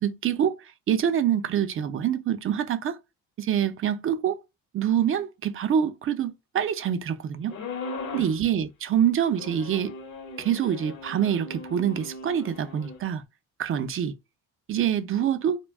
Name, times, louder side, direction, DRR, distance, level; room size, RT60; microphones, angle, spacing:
voice 1, 0.0-0.6 0.9-3.0 3.4-4.4 4.7-7.6 8.1-9.9 10.4-13.2 13.6-14.1 14.7-15.6, right 9 dB, 40° right, 0.5 m, -25 dB
sound 1, 7.5-8.4 9.3-13.0, left 3 dB, 65° left, 0.9 m, -38 dB
2.2 x 2.2 x 3.3 m
cardioid pair, 90°, 33 cm